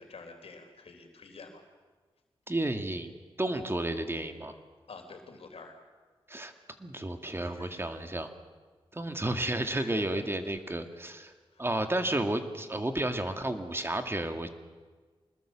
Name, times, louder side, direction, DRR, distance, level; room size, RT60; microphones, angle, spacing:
voice 1, 0.0-1.6 4.9-5.8 7.4-7.8 9.7-10.0 11.1-11.2 11.5-11.7, left 4 dB, 80° left, 5 dB, 3.8 m, -49 dB
voice 2, 2.5-3.1 3.4-4.5 6.3-6.5 6.8-8.3 8.9-11.3 11.6-14.5, right 1 dB, 25° right, 6 dB, 2.1 m, -32 dB
25.0 x 20.5 x 7.5 m, 1.4 s
cardioid pair, 65°, 10 cm